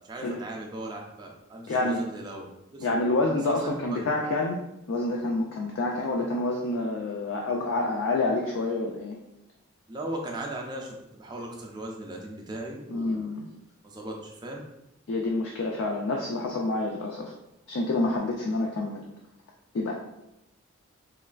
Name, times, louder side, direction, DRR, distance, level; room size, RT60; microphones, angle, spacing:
voice 1, 0.1-2.5 2.7-2.9 3.5-4.0 9.9-13.3 13.8-14.6, right 1 dB, 20° right, 0 dB, 0.3 m, -37 dB
voice 2, 1.7-2.0 2.8-9.2 12.9-13.5 15.1-17.3 17.7-19.1 19.7-19.9, left 2 dB, 65° left, -1 dB, 0.3 m, -28 dB
3.1 x 2.2 x 2.4 m, 0.87 s
head